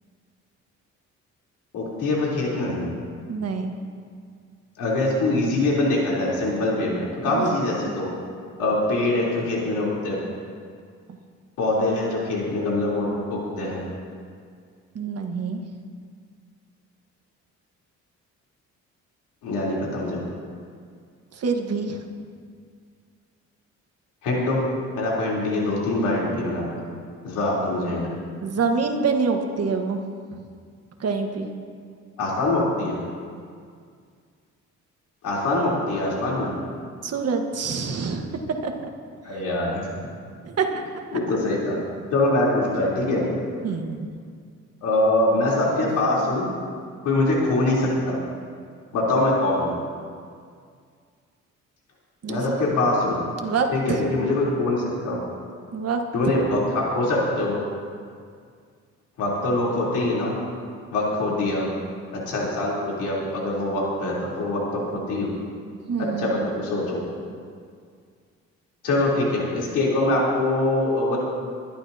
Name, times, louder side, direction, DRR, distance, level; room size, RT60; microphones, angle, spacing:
voice 1, 1.7-2.9 4.8-8.1 8.6-10.2 11.6-13.8 19.4-20.2 24.2-24.6 25.0-26.8 27.2-28.0 32.2-33.0 35.2-36.5 39.2-39.8 41.1-41.8 42.1-43.2 44.8-46.5 47.0-48.2 48.9-49.7 52.3-53.2 53.7-55.2 56.1-57.6 59.2-60.4 60.9-61.7 62.1-64.8 65.1-65.3 66.2-67.0 68.8-71.2, left 2 dB, 85° left, -5 dB, 3.6 m, -23 dB
voice 2, 3.3-3.7 7.2-7.5 7.9-8.0 14.9-15.6 21.4-22.0 28.4-30.0 31.0-31.5 37.0-38.7 39.3-39.4 40.4-40.7 43.6-44.1 52.2-52.4 53.4-54.0 55.7-56.0 65.9-66.5, right 5 dB, 55° right, 4 dB, 1.5 m, -26 dB
23.0 x 11.5 x 2.8 m, 2.1 s
cardioid pair, 90°, 30 cm